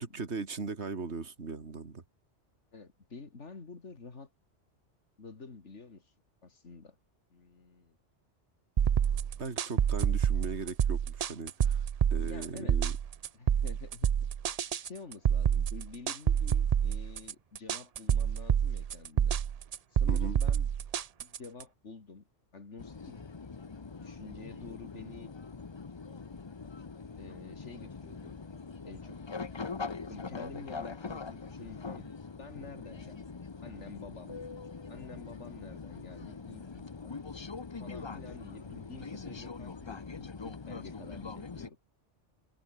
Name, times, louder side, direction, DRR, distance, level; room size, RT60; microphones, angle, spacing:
voice 1, 0.0-2.0 9.4-13.0 20.1-20.4, right 4 dB, 70° right, 2.5 m, -38 dB
voice 2, 2.7-4.3 5.2-6.1 6.4-7.0 7.3-8.0 12.2-12.8 13.3-14.1 14.8-19.4 19.9-20.7 21.2-22.3 22.5-23.2 24.0-25.3 27.2-28.4 28.8-29.2 30.1-32.1 32.4-33.3 33.6-34.4 34.9-37.2 37.8-41.8, left 4 dB, 80° left, 2.8 m, -49 dB
sound 1, 8.8-21.6, right 8 dB, 50° right, 0.5 m, -28 dB
sound 2, 22.8-41.7, left 4 dB, 25° left, 0.7 m, -43 dB
omnidirectional pair, 1.2 m